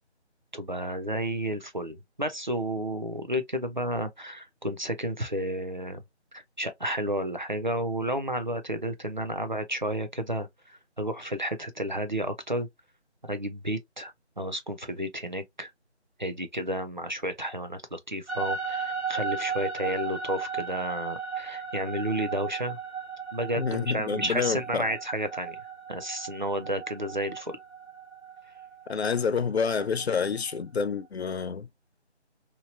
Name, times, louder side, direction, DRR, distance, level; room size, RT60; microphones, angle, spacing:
voice 1, 0.5-6.0 6.3-12.7 13.2-15.7 16.2-22.8 23.3-25.6 25.9-27.6, right 1 dB, 45° right, 0.5 m, -32 dB
sound 1, 18.3-30.6, right 5 dB, 75° right, 1.1 m, -36 dB
voice 2, 23.6-24.9 28.9-31.7, left 6 dB, 70° left, 0.5 m, -28 dB
2.9 x 2.7 x 2.6 m
figure-of-eight pair, 175°, 34 cm